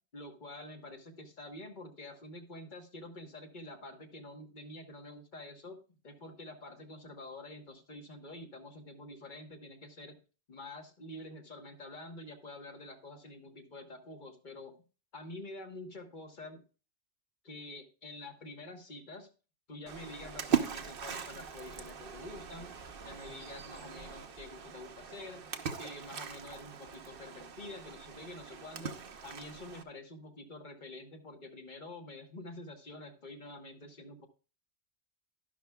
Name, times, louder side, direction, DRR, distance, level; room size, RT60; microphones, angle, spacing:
voice 1, 0.1-10.2 10.5-14.7 15.1-16.6 17.4-19.3 19.7-22.7 23.0-25.4 25.8-34.3, left 2 dB, 40° left, 4 dB, 1.4 m, -47 dB
Splash splatter, 19.9-29.8, right 7 dB, 55° right, 1.0 m, -39 dB
11.5 x 11.5 x 2.3 m, 0.35 s
omnidirectional pair, 1.2 m